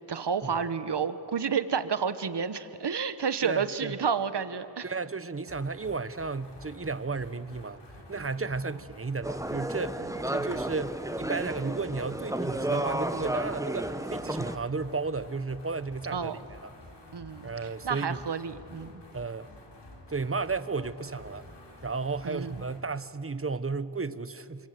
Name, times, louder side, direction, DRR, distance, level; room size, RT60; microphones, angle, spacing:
voice 1, 0.1-4.9 16.1-16.4 17.1-19.0 22.2-22.5, right 6 dB, 80° right, 12 dB, 1.3 m, -30 dB
voice 2, 3.4-3.9 4.8-7.8 8.1-16.7 17.4-18.2 19.1-19.5 20.1-21.5 21.8-24.7, right 4 dB, 30° right, 14 dB, 1.1 m, -33 dB
sound 1, 5.5-22.9, left 1 dB, 80° left, 4.3 m, -50 dB
sound 2, 9.2-14.6, right 1 dB, 10° right, 1.4 m, -32 dB
29.5 x 25.5 x 7.9 m, 2.8 s
cardioid pair, 50°, 41 cm